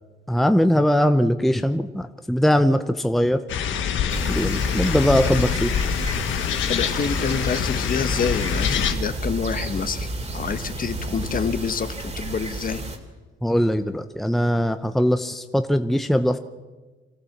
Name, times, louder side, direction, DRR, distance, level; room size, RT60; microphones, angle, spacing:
voice 1, 0.3-3.4 4.3-5.7 13.4-16.4, equal, ahead, 9 dB, 0.8 m, -21 dB
sound 1, 3.5-8.9, left 8 dB, 75° left, 1.5 m, -25 dB
sound 2, 4.1-13.0, right 2 dB, 35° right, 2.8 m, -32 dB
voice 2, 6.7-12.8, left 6 dB, 45° left, 10 dB, 1.3 m, -27 dB
25.0 x 14.5 x 7.3 m, 1.3 s
cardioid pair, 90°, 20 cm